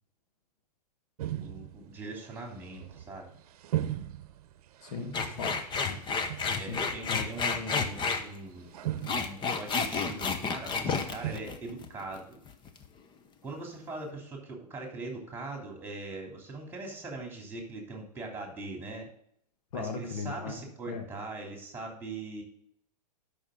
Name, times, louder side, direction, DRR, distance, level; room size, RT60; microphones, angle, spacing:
sound 1, 1.2-11.4, right 12 dB, 60° right, 0.9 m, -39 dB
voice 1, 1.4-3.3 5.4-5.5 6.6-8.7 9.1-12.4 13.4-19.1 19.7-22.4, right 2 dB, 10° right, 1 dB, 3.1 m, -41 dB
voice 2, 4.8-6.0 6.5-7.5 19.7-21.1, left 5 dB, 65° left, 5 dB, 1.9 m, -39 dB
sound 2, 5.1-8.2 8.8-12.2 12.5-12.9, left 5 dB, 20° left, 0.9 m, -31 dB
12.5 x 6.1 x 3.8 m, 0.68 s
hypercardioid pair, 120°, 21 cm